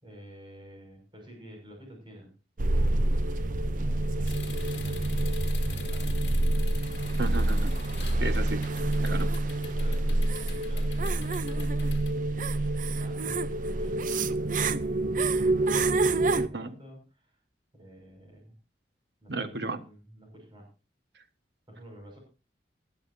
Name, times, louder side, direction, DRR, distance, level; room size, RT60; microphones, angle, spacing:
voice 1, 0.0-2.3 3.0-6.2 9.4-14.7 15.0-17.4 17.7-18.5 19.2-20.7 21.7-22.2, equal, 30° right, 1 dB, 6.2 m, -50 dB
sound 1, 2.6-16.5, right 2 dB, 45° right, 0.6 m, -27 dB
sound 2, 4.2-12.1, left 10 dB, 70° left, 1.9 m, -47 dB
voice 2, 7.2-7.7 8.2-8.6 9.0-9.3 16.5-16.7 19.3-19.8, right 3 dB, 65° right, 9 dB, 1.5 m, -33 dB
18.5 x 12.0 x 2.7 m, 0.30 s
head